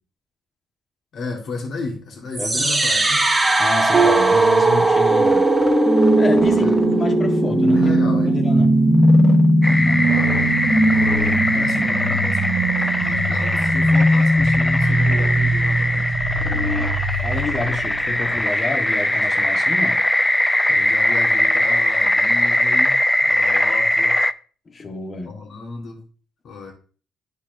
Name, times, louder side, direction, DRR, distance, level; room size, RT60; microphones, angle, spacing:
voice 1, 1.1-3.2 6.5-7.0 7.7-8.3 10.8-11.0 11.4-16.1 20.7-24.1 25.2-26.0 26.4-26.7, left 3 dB, 65° left, 1.6 m, -33 dB
sound 1, 2.3-18.4, right 1 dB, 15° right, 1.0 m, -18 dB
voice 2, 3.6-5.5 6.2-8.7 11.5-11.8 16.5-17.0 17.2-20.0 24.7-25.3, left 3 dB, 35° left, 1.2 m, -29 dB
Piano, 3.9-10.8, right 5 dB, 50° right, 1.3 m, -30 dB
sound 2, 9.6-24.3, left 1 dB, 10° left, 0.4 m, -21 dB
10.5 x 4.1 x 2.6 m
cardioid pair, 90°, 0 cm